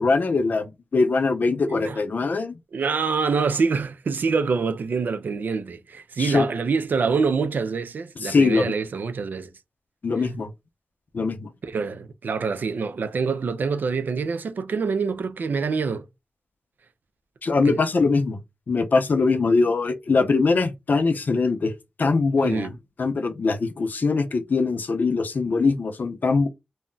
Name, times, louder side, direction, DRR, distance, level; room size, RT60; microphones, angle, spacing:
voice 1, 0.0-2.6 6.2-6.4 8.2-8.7 10.0-10.5 11.1-11.5 17.4-18.4 18.7-21.7 22.0-22.7 23.0-26.5, left 4 dB, 75° left, 0.5 m, -22 dB
voice 2, 1.7-2.0 2.7-9.5 11.6-16.0 17.6-17.8 22.4-22.7, right 5 dB, 90° right, 0.3 m, -25 dB
2.2 x 2.0 x 3.7 m
cardioid pair, 45°, 3 cm